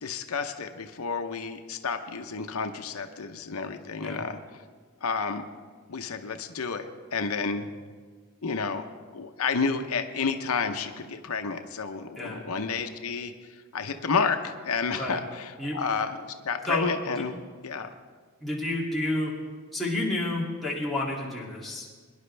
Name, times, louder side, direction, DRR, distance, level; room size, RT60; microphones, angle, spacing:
voice 1, 0.0-4.6 5.0-5.4 5.9-7.7 8.4-8.8 9.1-13.3 13.7-17.9, left 5 dB, 85° left, 6 dB, 0.8 m, -30 dB
voice 2, 18.4-19.3 19.7-22.0, left 2 dB, ahead, -7 dB, 2.5 m, -30 dB
23.0 x 10.5 x 3.3 m, 1.5 s
head